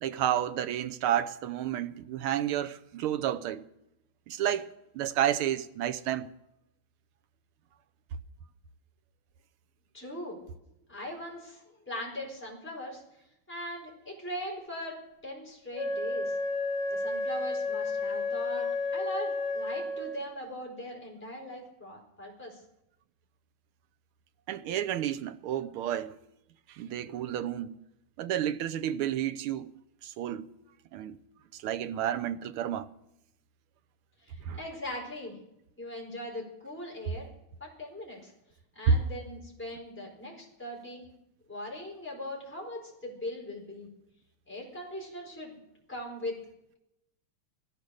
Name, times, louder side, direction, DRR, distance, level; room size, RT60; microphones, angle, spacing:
voice 1, 0.0-3.6 4.3-4.7 4.9-6.3 24.5-26.2 26.7-27.8 28.2-29.7 30.0-30.5 30.9-31.2 31.5-32.9 34.4-34.6 38.9-39.0, right 9 dB, 85° right, 1.7 m, -30 dB
voice 2, 9.9-10.4 10.9-13.0 13.5-15.0 15.2-16.4 16.9-22.6 34.2-35.4 35.8-37.3 37.6-38.3 38.7-41.1 41.5-43.9 44.5-45.5 45.9-46.4, left 1 dB, 5° left, 4.4 m, -40 dB
Wind instrument woodwind instrument, 15.7-20.4, left 2 dB, 40° right, 5.4 m, -32 dB
17.0 x 13.0 x 6.5 m
omnidirectional pair, 2.3 m